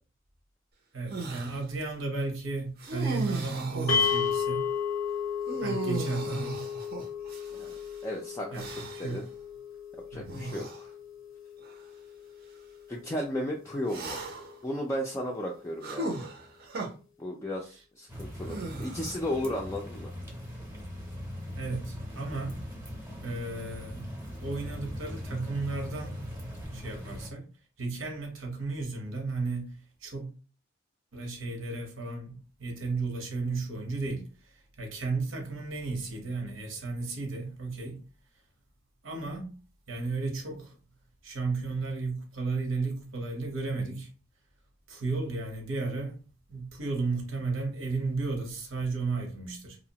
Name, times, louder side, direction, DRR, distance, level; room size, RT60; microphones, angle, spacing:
voice 1, 0.9-4.7 5.6-6.7 8.5-9.2 10.1-10.5 21.6-22.6 23.2-24.1 24.4-26.2 26.7-27.5 27.8-30.4 31.1-34.5 34.8-38.0 39.0-39.6 39.9-40.8 41.2-44.1 44.9-46.2 46.5-49.8, right 3 dB, 90° right, 0.9 m, -34 dB
sound 1, 1.1-1.6 2.8-4.3 5.5-7.8 8.6-9.2 10.3-10.8 11.6-11.8 13.9-14.6 15.8-16.9 18.4-19.3, right 2 dB, 50° right, 0.5 m, -36 dB
sound 2, 3.9-14.2, left 6 dB, 80° left, 0.5 m, -34 dB
voice 2, 8.0-8.6 9.0-9.2 10.1-10.9 12.9-14.2 14.6-16.1 17.2-20.1, equal, 15° left, 0.3 m, -34 dB
sound 3, 18.1-27.3, equal, 10° right, 0.7 m, -40 dB
2.8 x 2.0 x 2.8 m
head